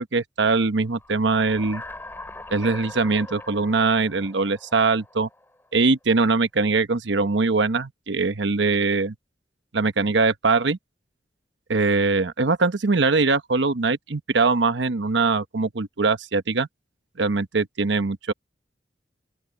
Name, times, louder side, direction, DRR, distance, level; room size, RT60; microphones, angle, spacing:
voice 1, 0.0-1.8 2.5-5.3 5.7-9.1 9.7-10.8 11.7-16.7 17.2-18.3, right 3 dB, 90° right, 1.0 m, -22 dB
sound 1, 0.9-5.6, left 2 dB, 10° left, 6.4 m, -41 dB
open air
head